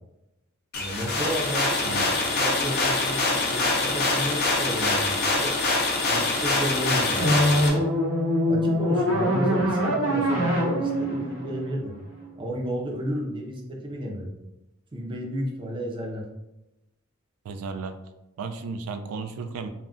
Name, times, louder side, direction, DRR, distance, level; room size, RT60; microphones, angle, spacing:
sound 1, 0.7-7.7, left 3 dB, 50° left, 0.5 m, -24 dB
voice 1, 0.7-5.6 6.0-7.9 8.5-11.9 12.4-14.4 14.9-16.3, equal, 25° right, 0 dB, 0.4 m, -32 dB
sound 2, 7.2-12.3, equal, 70° right, 0.7 m, -24 dB
voice 2, 17.5-17.9 18.4-19.7, right 4 dB, 85° right, 9 dB, 0.3 m, -34 dB
2.3 x 2.1 x 3.7 m, 0.93 s
head